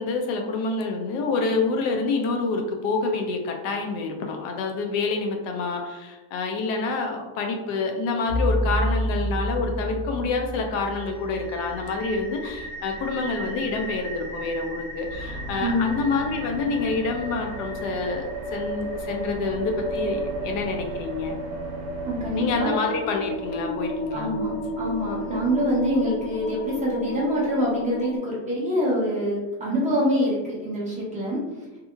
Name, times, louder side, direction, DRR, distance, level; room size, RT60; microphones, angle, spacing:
voice 1, 0.0-18.2 18.5-21.4 22.3-24.3 24.6-24.7, left 4 dB, 85° left, 3 dB, 0.7 m, -27 dB
sound 1, 8.3-28.2, equal, 35° left, 0.4 m, -32 dB
sound 2, 15.0-22.6, right 2 dB, 75° right, 0.7 m, -38 dB
voice 2, 15.6-15.9 22.0-22.7 24.1-31.4, equal, 15° right, -6 dB, 0.8 m, -25 dB
2.7 x 2.6 x 2.4 m, 1.1 s
cardioid pair, 155°, 47 cm